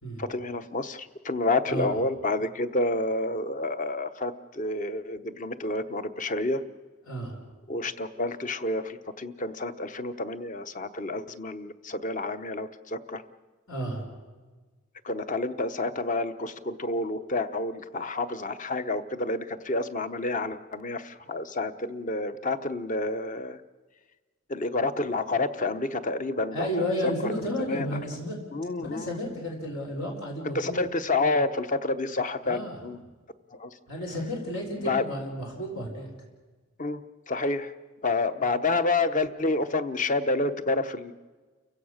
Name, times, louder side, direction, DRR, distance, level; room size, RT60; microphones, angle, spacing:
voice 1, 0.2-6.6 7.7-13.2 15.0-23.6 24.5-26.7 27.7-28.0 28.5-29.2 30.5-33.0 33.5-33.7 34.8-35.0 36.8-37.0 37.3-37.7 38.0-41.1, left 2 dB, 40° left, 11 dB, 0.9 m, -29 dB
voice 2, 7.0-7.4 13.7-14.0 26.5-28.4 28.8-30.8 32.4-32.8 33.9-36.1, equal, 80° left, 1 dB, 4.5 m, -32 dB
30.0 x 16.5 x 6.5 m, 1.3 s
head